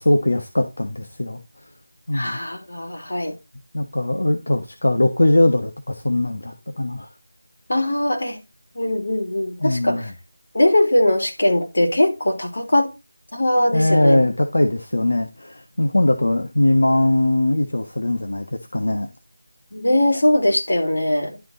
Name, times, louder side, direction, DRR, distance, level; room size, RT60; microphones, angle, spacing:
voice 1, 0.0-1.4 2.1-2.4 3.7-7.1 9.6-10.1 13.7-19.1, left 1 dB, 80° left, 1.3 m, -20 dB
voice 2, 2.1-3.4 7.7-8.4 8.7-10.1 10.5-13.0 13.3-14.2 19.7-21.4, left 1 dB, 55° left, 3.3 m, -20 dB
12.0 x 4.1 x 4.0 m
figure-of-eight pair, 180°, 0 cm